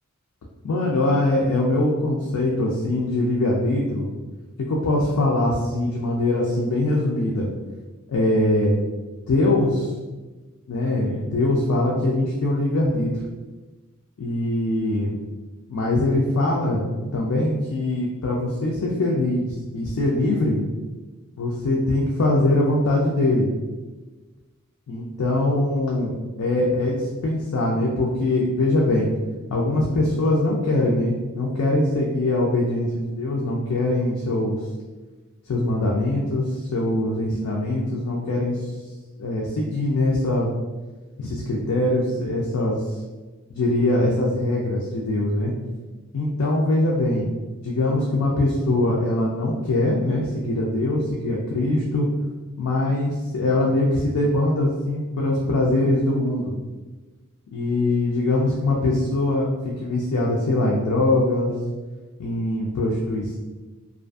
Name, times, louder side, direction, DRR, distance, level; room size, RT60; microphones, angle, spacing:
voice 1, 0.6-4.1 4.7-7.5 8.1-8.7 9.3-9.9 10.7-13.1 14.2-15.1 15.7-16.9 17.1-20.6 21.4-23.5 24.9-29.1 29.5-34.6 35.5-38.7 39.2-40.5 41.2-42.8 43.5-45.5 46.1-47.3 47.6-52.1 52.6-56.5 57.5-61.5 62.2-63.4, left 2 dB, 75° left, -3 dB, 0.4 m, -22 dB
2.4 x 2.4 x 2.3 m, 1.2 s
head